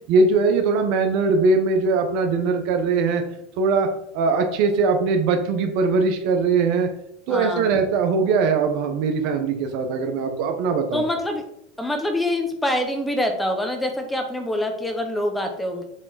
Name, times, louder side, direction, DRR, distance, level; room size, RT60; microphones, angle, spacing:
voice 1, 0.1-3.2 3.6-3.9 4.1-6.9 7.3-11.1, right 4 dB, 60° right, 6 dB, 1.1 m, -21 dB
voice 2, 7.3-7.8 10.9-11.4 11.8-15.8, left 1 dB, 5° left, 5 dB, 1.1 m, -25 dB
7.5 x 3.7 x 4.1 m, 0.75 s
supercardioid pair, 115°, 0 cm